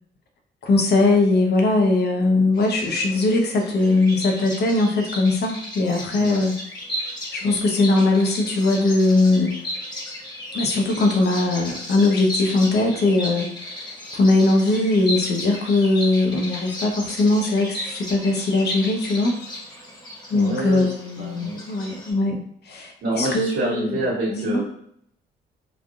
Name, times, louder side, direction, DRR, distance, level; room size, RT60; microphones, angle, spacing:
voice 1, 0.6-6.5 7.3-9.5 10.5-19.4 20.3-24.0 24.3-24.6, left 2 dB, 55° left, 2 dB, 0.8 m, -20 dB
Bird vocalization bird call bird song, 2.5-22.1, left 1 dB, 20° left, 1.2 m, -35 dB
voice 2, 6.1-6.4 20.3-21.9 23.0-24.6, right 1 dB, 70° right, -8 dB, 1.2 m, -27 dB
3.3 x 2.3 x 2.6 m, 0.68 s
cardioid pair, 90°, 20 cm